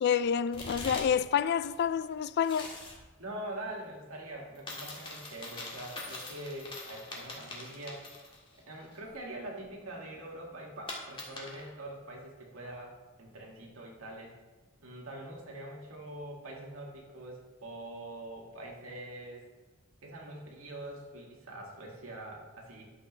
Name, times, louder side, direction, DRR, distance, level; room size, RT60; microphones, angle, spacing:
voice 1, 0.0-2.7, left 8 dB, 50° left, 0.3 m, -28 dB
sound 1, 0.5-1.3 1.6-3.0 4.5-8.6 8.9-9.0 10.9-11.7, left 2 dB, 25° left, 1.8 m, -43 dB
voice 2, 3.2-8.1 8.7-14.3 14.8-19.4 20.0-22.9, right 1 dB, 85° right, 2.2 m, -44 dB
11.5 x 6.8 x 3.3 m
head